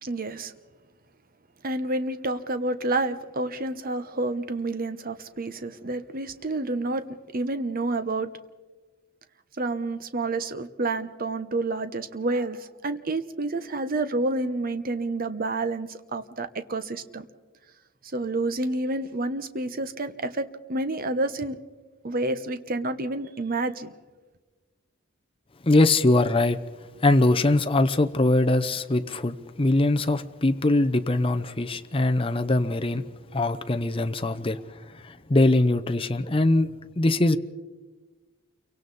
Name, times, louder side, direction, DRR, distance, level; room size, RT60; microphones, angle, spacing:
voice 1, 0.0-0.5 1.6-7.0 7.3-8.3 9.6-17.2 18.1-21.6 22.0-23.9, right 2 dB, 45° right, 11 dB, 1.0 m, -29 dB
voice 2, 25.6-26.6 27.0-33.0 33.3-34.6 35.0-37.4, left 2 dB, 25° left, 8 dB, 0.7 m, -22 dB
29.0 x 24.0 x 4.2 m, 1.3 s
head